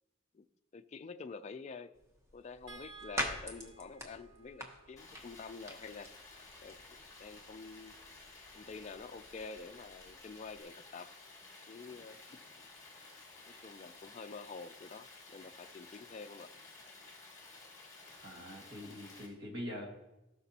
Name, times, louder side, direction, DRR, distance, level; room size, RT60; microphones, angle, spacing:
voice 1, 0.7-1.9 2.3-6.1 6.6-6.8 7.2-8.0 8.5-11.1 11.7-12.7 13.5-16.5, left 4 dB, 35° left, 8 dB, 0.3 m, -48 dB
sound 1, 1.9-10.6, equal, 15° right, 1.0 m, -46 dB
sound 2, 2.7-9.0 10.5-10.7 11.1-11.2, right 4 dB, 90° right, 1.3 m, -59 dB
Stream, 5.0-19.3, left 3 dB, 15° left, 1.7 m, -54 dB
voice 2, 18.2-19.9, left 1 dB, 55° right, 0 dB, 1.9 m, -44 dB
16.5 x 6.0 x 2.9 m, 1.0 s
head